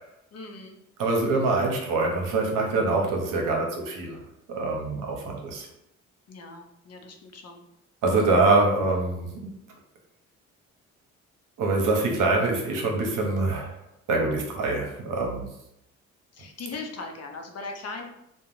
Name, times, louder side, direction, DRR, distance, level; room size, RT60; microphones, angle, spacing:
voice 1, 0.3-0.8 6.3-7.6 16.3-18.1, left 3 dB, 45° left, 3 dB, 0.6 m, -39 dB
voice 2, 1.0-4.2 4.5-5.7 8.0-9.5 11.6-13.7 14.1-15.5, right 3 dB, 65° right, 1 dB, 0.8 m, -24 dB
2.4 x 2.2 x 3.0 m, 0.80 s
hypercardioid pair, 55°, 34 cm